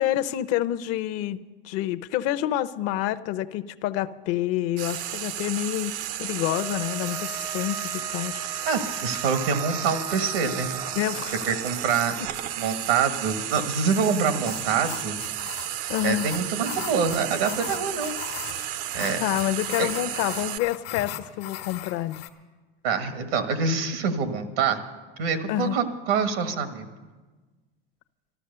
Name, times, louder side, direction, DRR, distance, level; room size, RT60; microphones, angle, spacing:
voice 1, 0.0-5.9 6.2-8.5 11.0-11.5 15.9-16.3 19.2-22.2 25.5-25.8, left 13 dB, 55° left, 14 dB, 0.7 m, -28 dB
Frying (food), 4.8-20.6, right 12 dB, 65° right, 0.7 m, -33 dB
Wind instrument woodwind instrument, 6.4-11.3, right 2 dB, 10° right, 0.5 m, -39 dB
voice 2, 8.7-10.7 11.5-12.1 12.6-15.2 16.0-18.1 18.9-19.2 19.8-19.9 22.8-24.8 25.2-26.9, right 5 dB, 85° right, 8 dB, 1.7 m, -25 dB
sound 1, 14.0-22.3, left 12 dB, 85° left, 1.3 m, -39 dB
13.5 x 12.5 x 6.8 m, 1.3 s
supercardioid pair, 110°, 29 cm